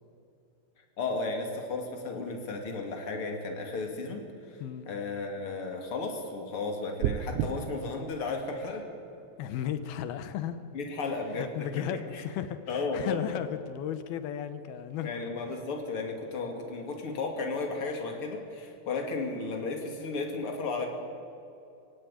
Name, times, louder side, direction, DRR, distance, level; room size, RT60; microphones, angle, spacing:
voice 1, 1.0-8.9 10.7-12.2 12.7-13.3 15.0-20.9, left 3 dB, 35° left, 2 dB, 2.8 m, -34 dB
sound 1, 7.0-7.5, right 11 dB, 85° right, 3.1 m, -28 dB
voice 2, 9.4-10.6 11.3-15.3, left 10 dB, 70° left, 10 dB, 2.6 m, -35 dB
23.5 x 16.0 x 9.8 m, 2.6 s
omnidirectional pair, 5.1 m